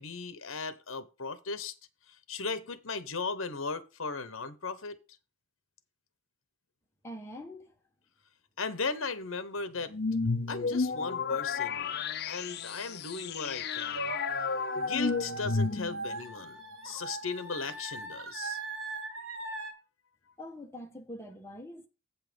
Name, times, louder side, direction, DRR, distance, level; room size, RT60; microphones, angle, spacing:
voice 1, 0.0-1.7 2.3-5.0 8.6-9.9 10.5-12.0 12.3-14.2 14.8-16.6 16.8-18.6, left 4 dB, 70° left, 1.0 m, -37 dB
voice 2, 7.0-7.7 20.4-21.9, left 1 dB, 15° left, 1.4 m, -44 dB
sound 1, 9.9-16.2, left 4 dB, 50° left, 0.6 m, -32 dB
sound 2, 13.9-19.7, right 3 dB, 75° right, 1.6 m, -40 dB
8.4 x 5.8 x 5.2 m
head